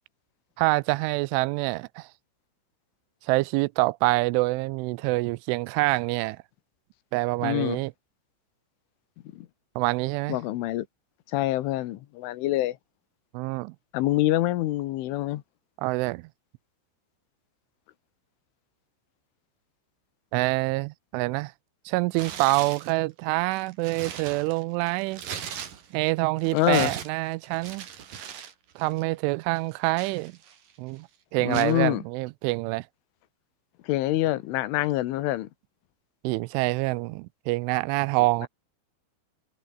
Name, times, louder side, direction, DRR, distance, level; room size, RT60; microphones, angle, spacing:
voice 1, 0.6-2.1 3.3-6.4 7.1-7.9 9.8-10.4 13.3-13.7 15.8-16.2 20.3-21.5 21.9-25.2 25.9-27.9 28.8-30.3 30.8-31.1 31.3-32.8 36.2-38.5, right 23 dB, 85° right, 3.0 m, -26 dB
voice 2, 7.4-7.8 9.3-9.5 10.3-10.9 11.3-12.8 13.9-15.4 26.5-26.9 31.4-32.0 33.9-35.5 38.4-38.5, left 15 dB, 80° left, 3.7 m, -26 dB
Tearing, 22.1-22.9 23.4-26.1 26.4-28.5 28.8-29.0 29.5-30.7 31.5-31.8, right 8 dB, 50° right, 3.7 m, -39 dB
omnidirectional pair, 5.6 m